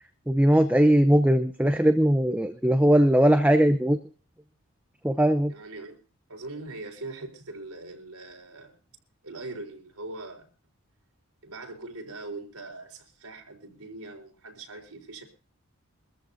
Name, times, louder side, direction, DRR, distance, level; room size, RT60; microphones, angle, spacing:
voice 1, 0.3-4.0 5.0-5.5, right 1 dB, 5° right, 8 dB, 0.7 m, -20 dB
voice 2, 5.5-6.0 6.3-8.8 9.2-10.5 11.4-15.2, right 2 dB, 85° right, 4 dB, 4.1 m, -41 dB
24.0 x 14.0 x 2.7 m, 0.34 s
head